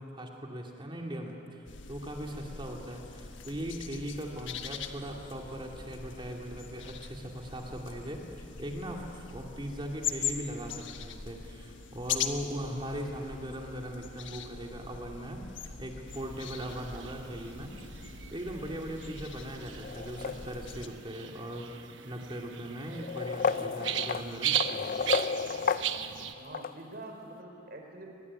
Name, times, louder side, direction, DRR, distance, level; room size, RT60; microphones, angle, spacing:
voice 1, 0.0-15.4 15.8-17.7 18.0-24.9, equal, 25° right, 1 dB, 2.6 m, -39 dB
sound 1, 1.7-20.9, left 6 dB, 85° left, 1.4 m, -41 dB
sound 2, 16.1-26.3, right 10 dB, 80° right, 1.1 m, -38 dB
sound 3, 19.8-20.9 21.8-21.9 22.9-26.7, left 5 dB, 50° left, 0.6 m, -32 dB
voice 2, 26.4-28.1, right 2 dB, 55° right, 3 dB, 4.3 m, -45 dB
23.5 x 21.0 x 9.7 m, 2.8 s
head